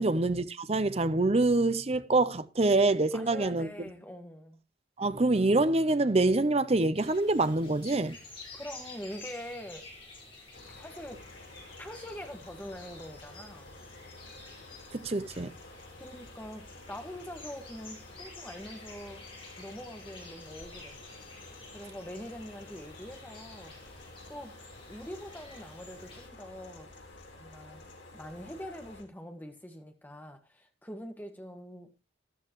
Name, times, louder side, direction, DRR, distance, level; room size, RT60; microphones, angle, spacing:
voice 1, 0.0-3.7 5.0-8.2 14.9-15.5, right 2 dB, 30° right, 0.6 m, -26 dB
voice 2, 3.1-4.6 8.5-9.9 10.7-11.2 11.8-13.7 15.9-19.3 19.6-21.0 21.7-24.5 24.9-26.9 27.3-27.8 28.1-31.9, equal, 10° left, 1.6 m, -44 dB
sound 1, 6.9-26.3, left 3 dB, 25° left, 5.2 m, -51 dB
sound 2, 10.5-29.0, left 2 dB, 75° left, 3.8 m, -51 dB
13.5 x 11.5 x 3.1 m
head